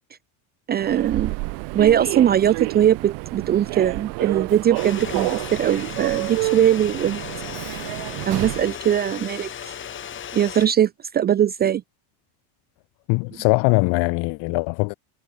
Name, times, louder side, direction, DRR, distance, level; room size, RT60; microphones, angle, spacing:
voice 1, 0.7-1.4 1.7-7.2 7.7-7.8 8.3-9.7 10.3-11.8, right 10 dB, 20° right, 0.5 m, -20 dB
Human voice / Subway metro underground, 0.8-8.7, right 29 dB, 60° right, 2.0 m, -29 dB
sound 1, 4.7-10.7, left 9 dB, 25° left, 2.8 m, -35 dB
voice 2, 13.1-14.9, left 29 dB, 65° left, 5.9 m, -21 dB
cardioid pair, 160°, 45 cm